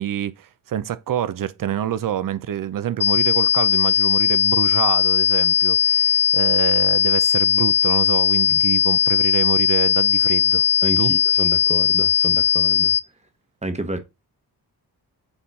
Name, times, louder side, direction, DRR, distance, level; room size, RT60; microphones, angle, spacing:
voice 1, 0.0-10.6 11.0-11.1, right 10 dB, 55° right, 0.6 m, -27 dB
sound 1, 3.0-13.0, left 8 dB, 30° left, 0.5 m, -18 dB
voice 2, 10.8-12.9 13.6-14.0, right 2 dB, 15° right, 1.1 m, -30 dB
7.1 x 3.7 x 4.1 m
cardioid pair, 85°, 39 cm